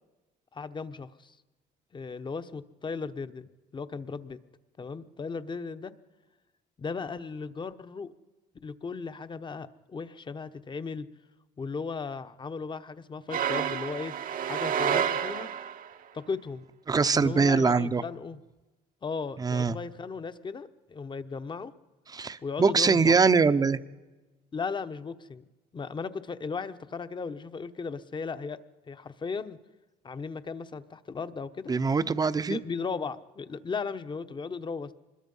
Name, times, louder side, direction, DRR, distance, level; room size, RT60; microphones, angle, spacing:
voice 1, 0.5-1.4 1.9-4.4 4.8-5.9 6.8-8.1 8.6-11.1 11.6-14.1 14.5-15.5 16.1-16.6 17.1-18.4 19.0-21.7 22.4-23.2 24.5-25.4 25.7-28.6 28.9-29.6 30.0-31.7 32.5-34.9, left 5 dB, 25° left, 12 dB, 1.0 m, -36 dB
sound 1, 13.3-15.9, right 8 dB, 55° right, 1.0 m, -29 dB
voice 2, 16.9-18.0 19.4-19.8 22.1-23.8 31.7-32.6, right 4 dB, 20° right, 12 dB, 0.8 m, -23 dB
25.0 x 21.0 x 5.5 m, 1.2 s
cardioid pair, 110°, 17 cm